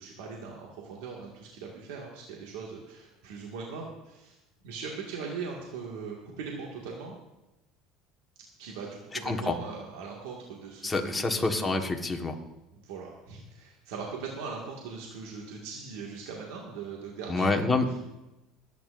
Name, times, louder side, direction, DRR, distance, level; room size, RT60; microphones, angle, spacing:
voice 1, 0.0-4.4 4.6-7.2 8.6-11.5 12.7-18.0, right 5 dB, 85° right, -2 dB, 1.9 m, -40 dB
voice 2, 9.2-9.6 10.8-12.4 17.3-18.0, left 3 dB, 15° left, 3 dB, 1.4 m, -27 dB
25.5 x 9.3 x 2.6 m, 0.99 s
supercardioid pair, 125°, 0 cm